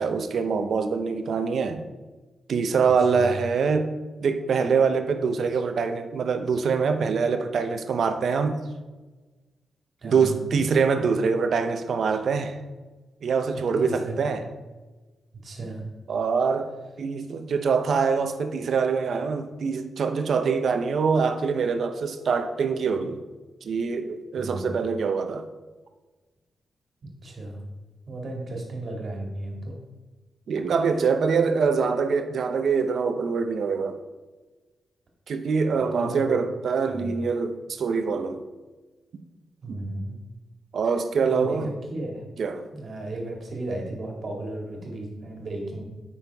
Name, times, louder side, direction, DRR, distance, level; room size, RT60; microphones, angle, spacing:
voice 1, 0.0-1.8 2.5-3.9 4.2-8.7 10.0-12.6 13.2-14.4 16.1-16.7 17.0-23.2 23.6-25.5 30.5-34.0 35.3-38.4 40.7-41.7 42.4-42.7, right 5 dB, 65° right, 7 dB, 0.7 m, -24 dB
voice 2, 2.8-3.3 10.0-10.4 13.5-14.3 15.4-15.8 24.4-24.7 27.2-27.6 28.1-29.8 35.7-36.4 36.9-37.1 39.6-40.2 41.2-42.3 42.7-45.8, right 2 dB, 50° right, 0 dB, 2.0 m, -34 dB
8.9 x 5.7 x 3.5 m, 1.2 s
wide cardioid pair, 130°, 0 cm